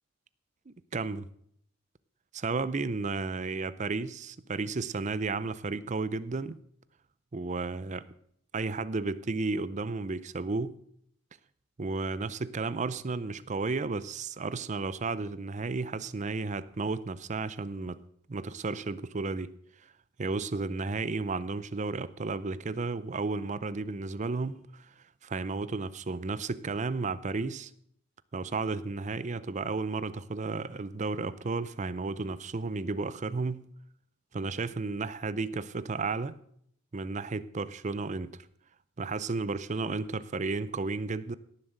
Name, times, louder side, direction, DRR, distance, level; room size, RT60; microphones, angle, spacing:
voice 1, 0.7-1.2 2.3-6.6 7.3-8.0 8.5-10.8 11.8-18.0 18.3-19.5 20.2-24.9 25.2-27.7 28.3-33.6 34.3-36.4 36.9-38.4 39.0-41.4, right 3 dB, 35° right, 16 dB, 0.5 m, -33 dB
17.5 x 7.4 x 6.5 m, 0.70 s
head